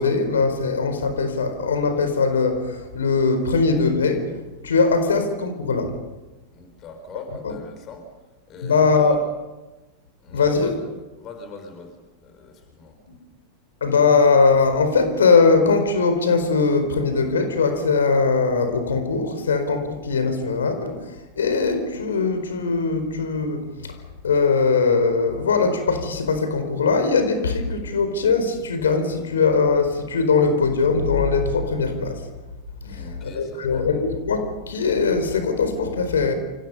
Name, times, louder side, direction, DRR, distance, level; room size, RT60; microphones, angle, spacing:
voice 1, 0.0-4.3 4.6-6.0 7.4-7.5 8.6-9.2 10.3-10.8 13.1-13.2 13.8-24.0 24.2-32.3 32.9-36.3, left 4 dB, 65° left, 8 dB, 4.5 m, -21 dB
voice 2, 6.5-8.1 8.5-9.2 10.2-10.7 11.2-12.0 12.2-12.9 32.8-33.9, left 5 dB, 35° left, 5 dB, 5.8 m, -40 dB
29.0 x 29.0 x 5.7 m, 1.1 s
figure-of-eight pair, 90°, 0 cm